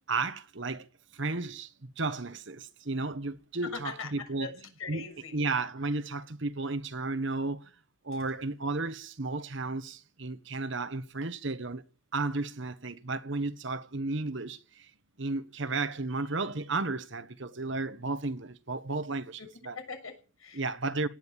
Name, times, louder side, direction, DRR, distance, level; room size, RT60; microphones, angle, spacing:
voice 1, 0.1-0.9 1.1-4.5 4.9-5.1 5.3-7.7 8.0-11.8 12.1-14.9 15.2-19.8 20.5-21.1, right 3 dB, 60° right, 1.2 m, -33 dB
voice 2, 3.6-5.4 19.4-19.5 19.7-20.7, left 5 dB, 85° left, 6.7 m, -41 dB
18.0 x 10.5 x 7.3 m
head